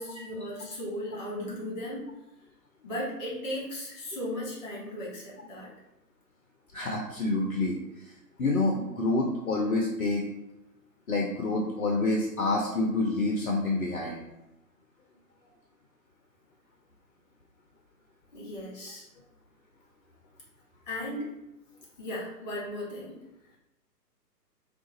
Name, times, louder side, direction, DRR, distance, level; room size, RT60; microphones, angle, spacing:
voice 1, 0.0-2.1 2.8-5.7 18.3-19.1 20.9-21.3 22.0-23.2, left 1 dB, 25° left, -4 dB, 1.5 m, -36 dB
voice 2, 6.7-8.1 8.4-10.2 11.1-14.2, left 2 dB, 55° left, 0 dB, 0.7 m, -28 dB
3.7 x 2.4 x 3.8 m, 0.91 s
figure-of-eight pair, 135°, 50 cm